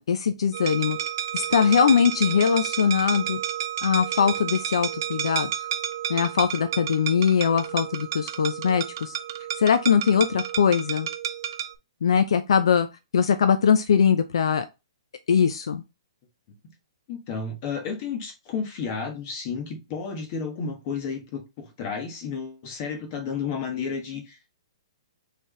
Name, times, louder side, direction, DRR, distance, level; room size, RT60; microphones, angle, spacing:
voice 1, 0.1-1.0 1.3-3.4 3.8-5.5 6.1-9.1 9.6-11.1 12.0-12.9 13.1-14.7 15.3-15.8, left 7 dB, 70° left, 0.5 m, -21 dB
sound 1, 0.5-11.7, right 10 dB, 45° right, 0.4 m, -31 dB
voice 2, 17.1-24.5, left 5 dB, 30° left, 1.3 m, -32 dB
4.5 x 3.4 x 3.0 m
hypercardioid pair, 170°, 3 cm